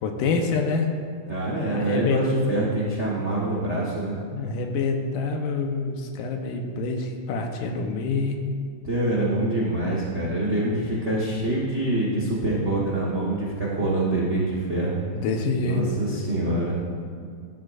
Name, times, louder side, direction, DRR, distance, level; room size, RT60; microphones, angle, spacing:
voice 1, 0.0-0.9 1.6-2.3 4.3-8.4 15.1-15.8, left 4 dB, 85° left, 3 dB, 2.6 m, -26 dB
voice 2, 1.3-4.2 8.8-15.0 15.6-16.7, right 1 dB, 55° right, -5 dB, 0.7 m, -25 dB
14.5 x 13.0 x 2.5 m, 2.2 s
omnidirectional pair, 3.7 m